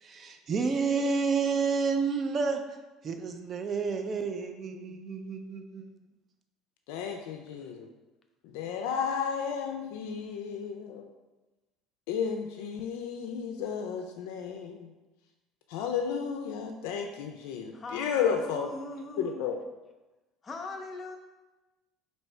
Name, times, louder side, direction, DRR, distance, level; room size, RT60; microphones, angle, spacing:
voice 1, 0.0-2.6 3.0-5.9, right 5 dB, 35° right, 6 dB, 0.4 m, -30 dB
voice 2, 6.9-7.9 8.5-11.1 12.1-14.9 15.7-18.7 19.2-19.6, left 7 dB, 80° left, 4 dB, 0.3 m, -33 dB
voice 3, 17.7-19.5 20.4-21.2, left 2 dB, 25° left, 3 dB, 0.5 m, -40 dB
3.1 x 2.7 x 4.4 m, 1.1 s
cardioid pair, 120°, 0 cm